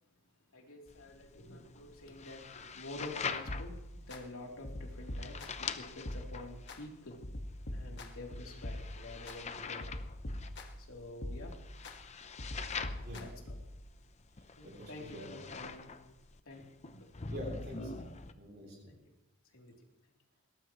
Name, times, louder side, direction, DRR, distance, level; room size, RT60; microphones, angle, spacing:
voice 1, 0.5-7.2 7.7-9.8 10.8-11.5 13.2-13.6 14.6-15.9 16.4-17.1 18.6-19.0 19.5-19.7, left 2 dB, 75° left, 0 dB, 3.2 m, -48 dB
sound 1, 0.9-18.3, left 5 dB, 30° left, 0.7 m, -45 dB
sound 2, 3.5-4.2 4.6-5.7 6.1-6.8 7.2-9.4 9.8-10.9 11.2-12.0 12.4-13.8, left 1 dB, 55° left, 1.6 m, -43 dB
voice 2, 14.6-15.3 17.3-18.9, equal, 50° right, -2 dB, 7.1 m, -46 dB
21.0 x 18.5 x 3.1 m, 0.86 s
head